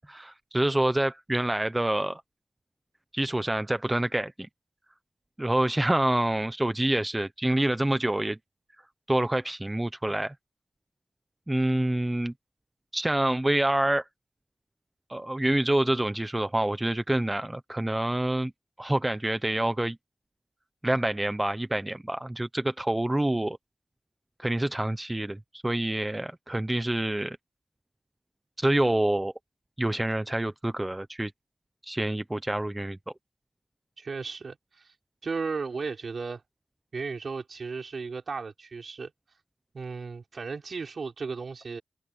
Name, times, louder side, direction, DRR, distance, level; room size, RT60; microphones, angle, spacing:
voice 1, 0.1-2.2 3.1-4.5 5.4-8.4 9.1-10.3 11.5-12.3 12.9-14.0 15.1-18.5 18.8-20.0 20.8-23.6 24.4-27.4 28.6-29.3 29.8-31.3 31.8-33.0, right 1 dB, 15° right, 0.9 m, -27 dB
voice 2, 34.0-34.9 35.2-36.4 36.9-39.1 39.7-41.8, right 4 dB, 65° right, 4.9 m, -35 dB
cardioid pair, 70°, 0 cm